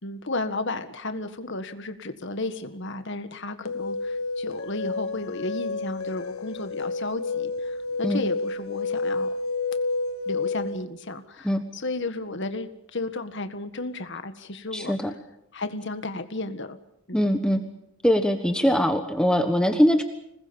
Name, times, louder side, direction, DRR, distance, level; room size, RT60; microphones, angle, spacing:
voice 1, 0.0-9.3 10.3-15.1 15.5-16.8 17.1-17.3, left 2 dB, 55° left, 9 dB, 1.8 m, -33 dB
sound 1, 3.6-10.8, left 3 dB, 75° left, 1.1 m, -30 dB
voice 2, 14.7-15.1 17.1-17.6 18.0-20.0, equal, 5° left, 6 dB, 1.3 m, -22 dB
26.5 x 20.0 x 7.2 m, 0.79 s
head